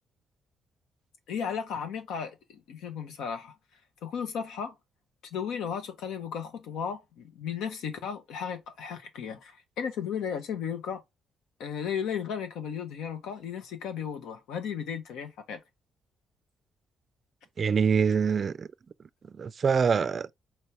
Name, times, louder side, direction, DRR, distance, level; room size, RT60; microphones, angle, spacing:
voice 1, 1.3-3.5 4.0-4.7 5.3-11.0 11.6-15.6, left 7 dB, 85° left, 1.0 m, -35 dB
voice 2, 17.6-18.7 19.2-20.3, right 6 dB, 45° right, 0.3 m, -25 dB
4.5 x 3.3 x 2.8 m
cardioid pair, 90°, 0 cm